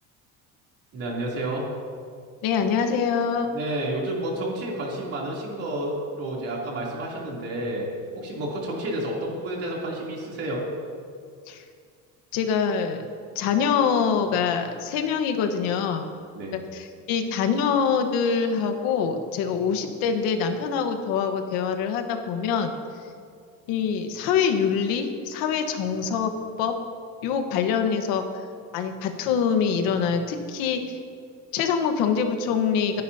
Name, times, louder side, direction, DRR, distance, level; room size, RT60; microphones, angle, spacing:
voice 1, 0.9-1.7 3.5-7.9 8.1-10.6 16.3-16.5, right 1 dB, 45° right, -3 dB, 3.1 m, -30 dB
voice 2, 2.4-3.5 11.5-11.6 12.3-13.0 13.3-16.0 16.5-22.7 23.7-26.8 27.2-28.2 28.7-30.8 31.5-33.0, left 6 dB, 85° left, 6 dB, 1.3 m, -24 dB
23.0 x 10.5 x 2.8 m, 2.3 s
cardioid pair, 165°, 34 cm